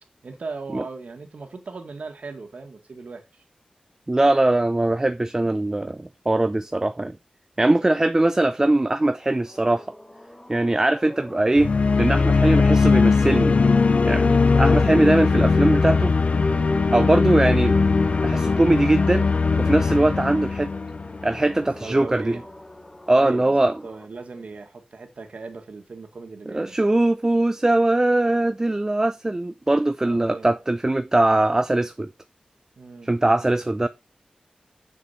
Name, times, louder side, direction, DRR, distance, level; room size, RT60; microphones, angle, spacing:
voice 1, 0.2-3.4 19.9-20.3 21.8-22.4 23.1-26.8 30.0-30.5 32.8-33.1, right 4 dB, 70° right, 1.9 m, -38 dB
voice 2, 4.1-7.2 7.6-9.9 10.5-11.7 12.0-13.5 14.0-16.1 16.9-17.8 18.2-19.3 19.6-20.7 21.2-22.4 23.1-23.7 26.5-32.1 33.0-33.9, right 2 dB, 20° right, 0.4 m, -21 dB
sound 1, 9.3-24.1, equal, 15° left, 1.0 m, -37 dB
sound 2, 11.6-21.6, left 4 dB, 60° left, 0.6 m, -20 dB
7.3 x 6.7 x 4.3 m
wide cardioid pair, 110°, 3 cm